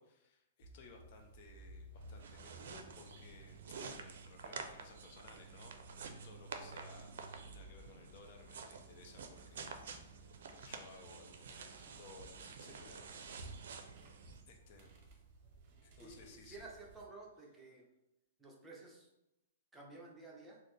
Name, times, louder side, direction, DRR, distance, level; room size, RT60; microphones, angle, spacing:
voice 1, 0.0-13.4 14.5-15.1 15.8-16.7, left 3 dB, 50° left, 3 dB, 0.6 m, -59 dB
sound 1, 0.6-17.1, right 2 dB, 45° right, 0.7 m, -57 dB
sound 2, 2.0-14.4, right 5 dB, 70° right, 0.4 m, -50 dB
voice 2, 16.0-17.8 18.4-19.1 19.7-20.6, right 3 dB, 10° right, -3 dB, 0.8 m, -53 dB
4.0 x 2.1 x 3.2 m, 0.89 s
hypercardioid pair, 135°, 0 cm